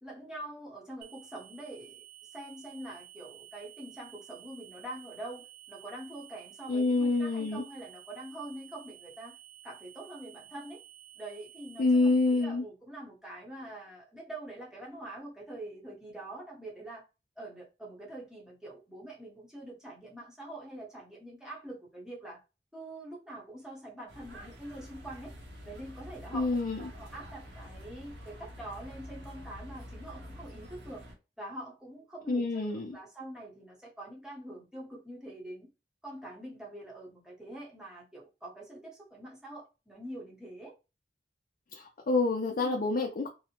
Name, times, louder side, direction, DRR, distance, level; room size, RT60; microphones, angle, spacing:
voice 1, 0.0-2.0 2.3-9.4 9.6-10.8 11.2-17.0 17.4-22.4 22.7-25.3 25.6-26.5 26.9-31.0 31.4-35.7 36.0-40.7 42.6-42.8, right 1 dB, 5° right, 0.9 m, -45 dB
sound 1, 1.0-12.4, right 13 dB, 55° right, 0.4 m, -53 dB
voice 2, 6.7-7.6 11.8-12.6 26.3-26.8 32.3-33.0 41.7-43.3, left 3 dB, 55° left, 0.5 m, -27 dB
sound 2, 24.1-31.1, equal, 80° right, 0.9 m, -47 dB
2.7 x 2.0 x 2.8 m
head